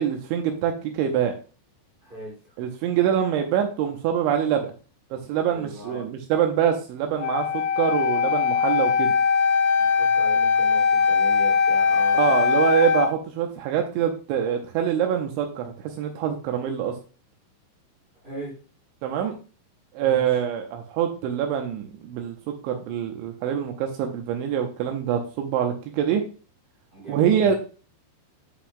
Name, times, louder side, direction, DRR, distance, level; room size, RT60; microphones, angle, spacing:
voice 1, 0.0-1.3 2.6-4.7 5.1-9.1 12.1-16.9 19.0-19.3 19.9-26.2 27.1-27.6, right 9 dB, 85° right, 4 dB, 3.0 m, -25 dB
voice 2, 2.0-2.6 5.4-6.1 9.8-12.2 18.2-18.6 20.0-20.3 26.9-27.5, right 1 dB, 20° right, -5 dB, 1.5 m, -39 dB
Wind instrument woodwind instrument, 7.2-13.1, left 6 dB, 85° left, 2.3 m, -21 dB
9.9 x 5.9 x 2.3 m, 0.36 s
omnidirectional pair, 5.6 m